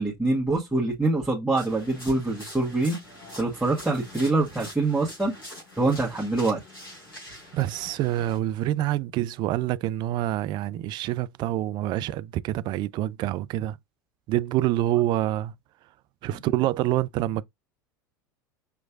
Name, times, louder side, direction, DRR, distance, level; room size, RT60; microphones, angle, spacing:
voice 1, 0.0-3.0 3.4-5.3 5.8-6.6, right 2 dB, 5° right, 1.4 m, -25 dB
sound 1, 1.6-8.4, left 1 dB, 90° left, 3.2 m, -44 dB
voice 2, 7.5-13.8 14.3-15.5 16.2-17.4, right 14 dB, 40° right, 0.4 m, -26 dB
5.7 x 3.0 x 2.4 m
figure-of-eight pair, 80°, 12 cm